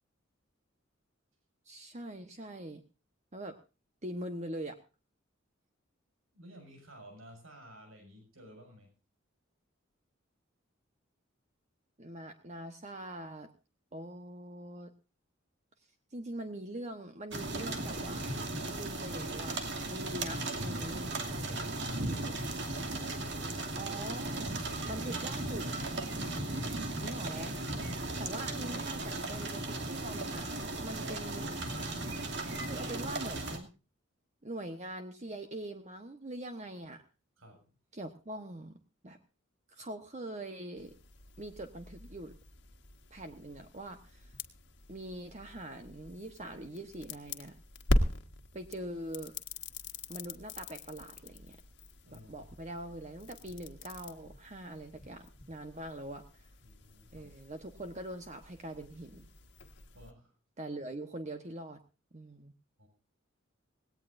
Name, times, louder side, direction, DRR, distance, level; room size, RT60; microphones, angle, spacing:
voice 1, 1.6-2.8 3.3-3.6 4.0-4.8 12.0-13.5 13.9-14.9 16.1-18.3 18.7-19.6 19.9-21.7 22.0-22.4 23.7-24.6 24.8-25.7 27.0-27.5 28.2-30.5 30.8-31.6 32.5-33.7 34.4-37.0 37.9-38.7 39.0-39.2 39.7-40.9 41.4-42.3 43.1-44.3 44.9-47.6 48.5-49.3 50.1-51.6 52.1-56.5 57.1-59.3 60.6-61.8 62.1-62.5, right 1 dB, 35° right, 6 dB, 1.2 m, -43 dB
voice 2, 6.3-8.9 37.4-37.7 52.0-52.5 56.6-57.3 59.9-60.3 62.8-62.9, equal, 85° right, 4 dB, 6.9 m, -54 dB
sound 1, 17.3-33.6, right 2 dB, 60° right, 2.6 m, -36 dB
sound 2, 40.8-60.1, left 1 dB, 60° left, 1.6 m, -40 dB
19.0 x 18.0 x 2.6 m, 0.32 s
head